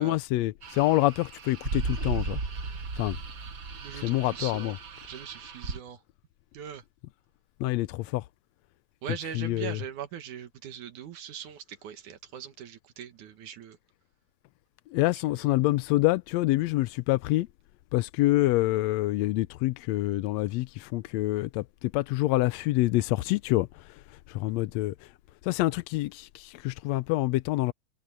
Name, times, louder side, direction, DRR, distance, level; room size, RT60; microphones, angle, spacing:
voice 1, 0.0-2.4 2.9-3.2 4.0-4.7 7.6-8.2 9.3-9.8 14.9-17.5 17.9-23.7 24.3-24.9 25.4-27.7, left 17 dB, 80° left, 1.7 m, -26 dB
sound 1, 0.6-5.8, right 4 dB, 40° right, 1.4 m, -36 dB
voice 2, 3.7-4.7 5.1-6.0 6.5-6.8 9.0-13.8 15.3-15.5, right 8 dB, 90° right, 3.1 m, -41 dB
omnidirectional pair, 3.3 m